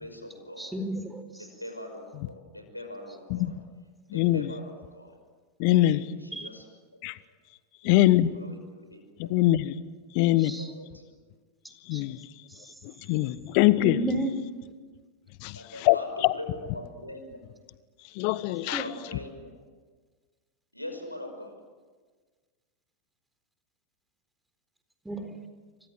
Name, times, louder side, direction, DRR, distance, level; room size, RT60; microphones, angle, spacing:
voice 1, 0.0-0.7 1.4-3.5 4.1-5.2 5.8-6.7 7.8-9.0 9.5-9.6 10.2-10.7 10.9-11.1 15.5-17.4 18.6-19.4 20.7-21.6, left 1 dB, 85° left, 4 dB, 5.9 m, -42 dB
voice 2, 0.6-1.2 6.3-6.5 10.4-10.7 11.9-12.0 13.8-14.5 18.7-18.8 25.1-25.4, right 1 dB, 5° right, 7 dB, 4.1 m, -32 dB
voice 3, 4.1-4.5 5.6-6.0 7.0-7.2 7.8-8.3 9.2-9.7 10.1-10.5 11.9-12.2 12.8-14.0 15.4-15.6 15.8-16.0 18.1-18.8, left 16 dB, 45° left, 16 dB, 1.2 m, -23 dB
29.0 x 25.5 x 7.8 m, 1.4 s
figure-of-eight pair, 90°, 0 cm